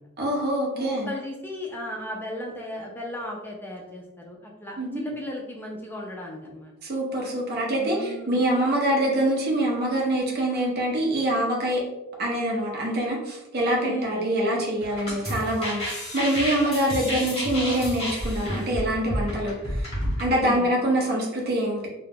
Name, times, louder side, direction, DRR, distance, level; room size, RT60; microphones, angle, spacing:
voice 1, 0.2-1.1 4.8-5.0 6.8-11.8 12.2-19.9 20.2-21.9, right 1 dB, 45° right, -2 dB, 0.6 m, -25 dB
voice 2, 0.7-6.7 7.8-8.4 13.8-14.3 20.3-20.7, left 1 dB, 10° left, -1 dB, 0.4 m, -36 dB
sound 1, 14.8-20.2, equal, 25° left, 0.8 m, -30 dB
2.3 x 2.1 x 3.3 m, 0.98 s
head